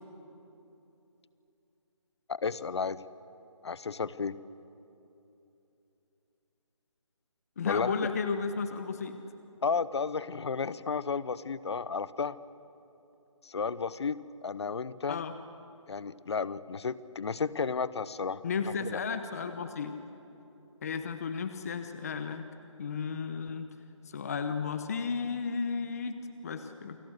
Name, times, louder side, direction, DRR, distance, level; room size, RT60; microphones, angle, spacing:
voice 1, 2.3-3.0 3.6-4.3 7.7-7.9 9.6-12.3 13.4-15.2 15.9-18.4 18.8-19.0, left 5 dB, 55° left, 17 dB, 0.9 m, -32 dB
voice 2, 7.6-9.2 15.1-15.3 18.4-20.0 20.8-22.4 22.8-23.7 24.1-27.0, left 5 dB, 30° left, 9 dB, 1.0 m, -33 dB
28.5 x 19.5 x 8.1 m, 2.9 s
figure-of-eight pair, 165°, 17 cm